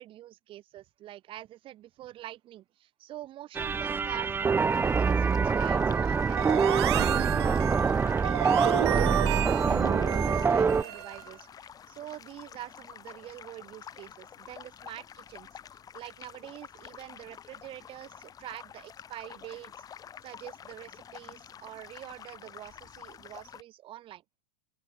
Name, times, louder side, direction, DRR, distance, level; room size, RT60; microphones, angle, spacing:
voice 1, 0.0-7.4 7.8-15.6 15.9-19.7 20.2-24.2, right 14 dB, 35° right, 3.2 m, -45 dB
sound 1, 3.5-10.8, right 5 dB, 15° right, 1.0 m, -25 dB
sound 2, 4.7-23.6, left 8 dB, 25° left, 4.2 m, -48 dB
sound 3, 6.4-11.3, right 16 dB, 65° right, 0.9 m, -32 dB
open air
hypercardioid pair, 115°, 15 cm